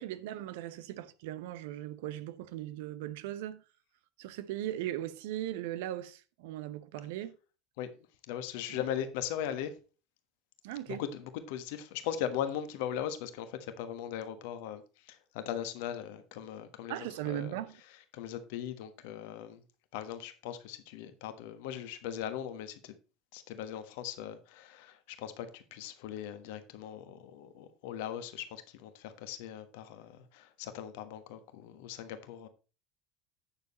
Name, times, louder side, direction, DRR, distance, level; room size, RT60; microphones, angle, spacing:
voice 1, 0.0-3.6 4.2-7.3 8.7-8.8 10.6-11.0 16.9-17.8, right 13 dB, 70° right, 0.8 m, -38 dB
voice 2, 8.3-9.7 11.0-17.6 18.1-19.6 19.9-22.9 23.3-32.5, left 10 dB, 70° left, 1.3 m, -39 dB
8.9 x 6.7 x 4.2 m
hypercardioid pair, 75°, 0 cm